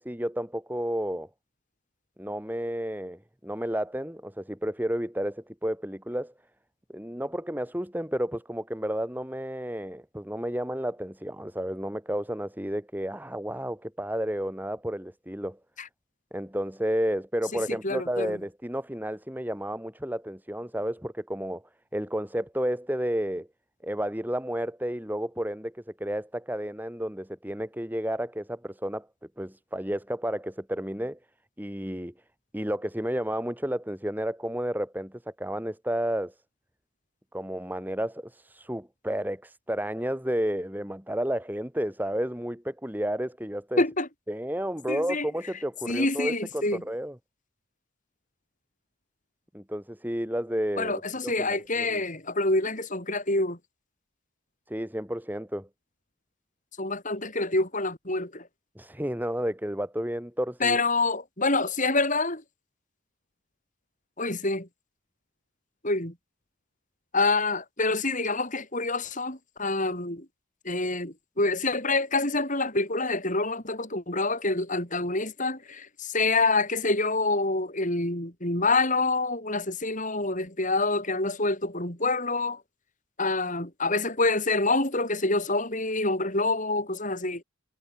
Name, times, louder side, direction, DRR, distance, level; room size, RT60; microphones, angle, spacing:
voice 1, 0.1-1.3 2.2-6.3 6.9-15.6 16.3-21.6 21.9-23.5 23.8-29.1 29.4-31.2 31.6-32.1 32.5-36.3 37.3-43.8 44.3-47.2 49.5-52.0 54.7-55.7 58.8-60.8, equal, 10° right, 2.2 m, -31 dB
voice 2, 17.5-18.4 43.8-44.1 44.9-45.3 45.9-46.8 50.8-53.6 56.8-58.5 60.6-62.4 64.2-64.7 65.8-66.1 67.1-70.3 70.6-82.6 83.2-87.4, left 3 dB, 35° left, 6.2 m, -27 dB
head